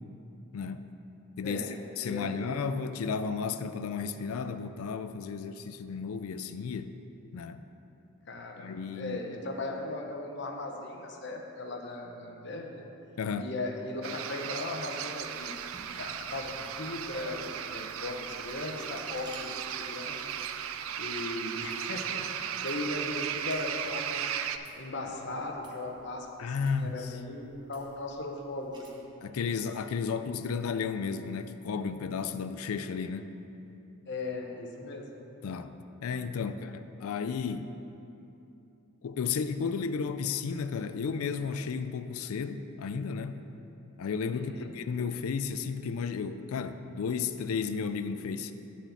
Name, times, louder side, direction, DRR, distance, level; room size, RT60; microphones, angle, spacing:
voice 1, 0.5-0.9 1.4-1.6 2.0-6.9 7.3-7.6 8.6-9.2 13.2-13.5 26.4-27.2 29.2-33.3 35.4-35.7 36.0-37.8 39.0-43.4 44.0-48.5, left 5 dB, 75° left, 10 dB, 0.4 m, -33 dB
voice 2, 2.0-2.5 8.3-12.8 13.4-15.5 15.9-20.2 21.0-24.4 24.8-29.1 34.1-35.1 44.3-44.7, left 2 dB, 50° left, 1 dB, 0.9 m, -38 dB
sound 1, 14.0-24.6, right 9 dB, 70° right, 0.4 m, -36 dB
sound 2, 15.1-28.9, right 1 dB, 20° right, 0.9 m, -57 dB
8.9 x 4.3 x 7.2 m, 2.9 s
head